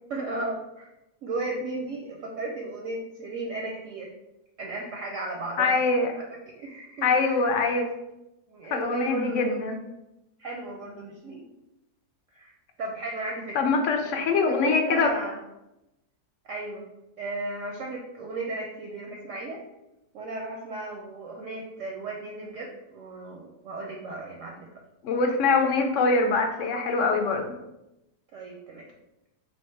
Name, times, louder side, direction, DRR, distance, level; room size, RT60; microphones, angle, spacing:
voice 1, 0.1-0.9 1.2-4.1 4.6-5.8 6.5-7.4 8.5-9.6 10.4-11.4 12.3-13.7 14.0-15.4 16.5-16.8 17.2-19.6 20.1-24.7 28.3-28.9, right 2 dB, 65° right, 0 dB, 0.8 m, -35 dB
voice 2, 5.6-6.1 7.0-7.9 8.7-9.8 13.6-15.1 25.0-27.5, left 4 dB, 70° left, 4 dB, 0.7 m, -23 dB
3.5 x 2.7 x 4.4 m, 0.91 s
omnidirectional pair, 1.7 m